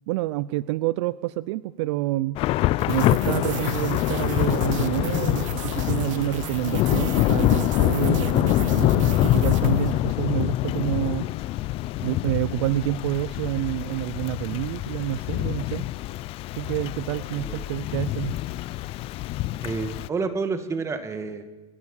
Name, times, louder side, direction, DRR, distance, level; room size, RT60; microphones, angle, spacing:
voice 1, 0.1-2.4 2.9-11.3 12.0-15.9 16.6-18.4, right 17 dB, 60° right, 19 dB, 0.5 m, -28 dB
Thunder / Rain, 2.4-20.1, left 16 dB, 35° left, 0.5 m, -25 dB
sound 1, 2.8-10.3, right 14 dB, 80° right, 0.9 m, -38 dB
voice 2, 17.3-17.7 19.6-21.5, right 4 dB, 15° right, 9 dB, 2.0 m, -29 dB
29.5 x 12.5 x 7.2 m, 1.2 s
supercardioid pair, 140°, 16 cm